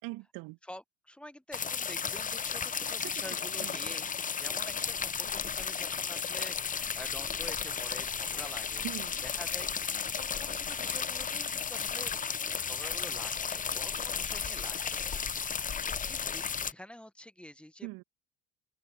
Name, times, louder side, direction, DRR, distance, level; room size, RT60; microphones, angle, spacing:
voice 1, 0.0-0.6 3.0-3.8 8.8-9.2 17.8-18.0, right 24 dB, 55° right, 2.6 m, -42 dB
voice 2, 0.6-4.1 4.4-8.8 9.2-15.7 16.1-17.9, left 1 dB, 5° left, 1.7 m, -48 dB
sound 1, 1.5-16.7, left 6 dB, 20° left, 1.0 m, -34 dB
open air
figure-of-eight pair, 60°, 40 cm